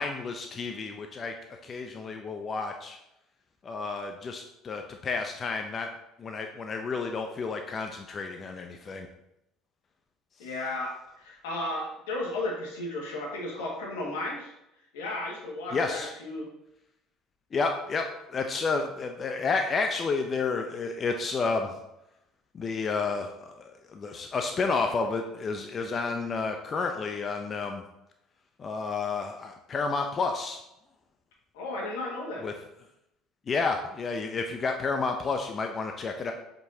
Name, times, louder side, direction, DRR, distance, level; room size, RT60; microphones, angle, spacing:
voice 1, 0.0-1.3 1.6-3.0 3.6-5.9 6.2-9.1 15.7-16.1 17.5-21.7 22.5-27.8 28.6-30.6 32.4-32.5 33.5-36.3, left 4 dB, 40° left, 4 dB, 0.7 m, -31 dB
voice 2, 10.4-14.5 14.9-16.5 31.5-32.5, left 2 dB, 85° left, -2 dB, 1.9 m, -34 dB
7.4 x 5.3 x 2.8 m, 0.84 s
hypercardioid pair, 70°, 0 cm